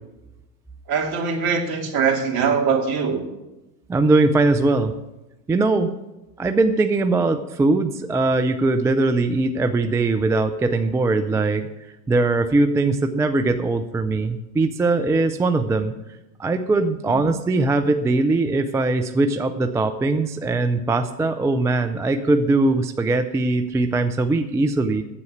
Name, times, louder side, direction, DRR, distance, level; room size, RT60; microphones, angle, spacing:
voice 1, 0.9-3.2 17.1-17.2, right 6 dB, 45° right, 3 dB, 2.8 m, -22 dB
voice 2, 3.9-4.9 5.5-5.9 6.4-11.7 12.1-15.9 16.4-25.0, right 2 dB, 5° right, 8 dB, 0.3 m, -21 dB
9.9 x 8.2 x 9.4 m, 1.0 s
hypercardioid pair, 90°, 50 cm